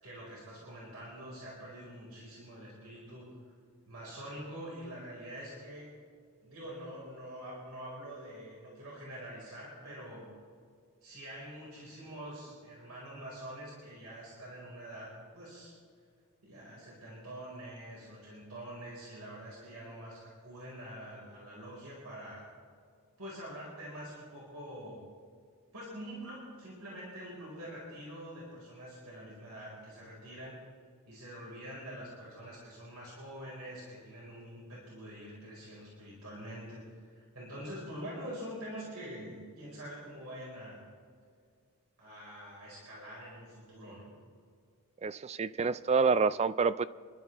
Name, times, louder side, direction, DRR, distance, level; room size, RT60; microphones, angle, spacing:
voice 1, 0.0-3.5 3.9-5.9 6.4-10.3 11.0-15.7 16.4-22.5 23.2-25.0 25.7-30.6 31.1-40.8 42.0-44.1, equal, 80° right, -5 dB, 5.0 m, -45 dB
voice 2, 45.0-46.8, right 5 dB, 30° right, 16 dB, 0.4 m, -27 dB
28.5 x 12.0 x 3.5 m, 2.1 s
head